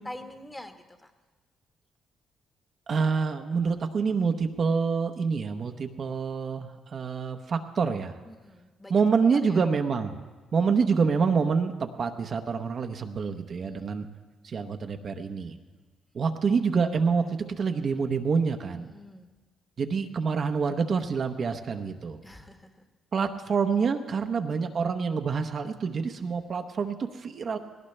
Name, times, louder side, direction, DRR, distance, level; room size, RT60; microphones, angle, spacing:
voice 1, 0.0-1.1 8.2-9.0 9.3-9.7 13.5-14.0 18.7-19.3 22.2-22.8, left 1 dB, 15° left, 6 dB, 1.3 m, -45 dB
voice 2, 2.9-8.2 8.9-10.2 10.5-14.0 14.4-15.5 16.1-18.9 19.8-22.2 23.1-27.6, right 5 dB, 50° right, 5 dB, 0.8 m, -27 dB
19.0 x 17.5 x 3.3 m, 1.3 s
cardioid pair, 90°, 0 cm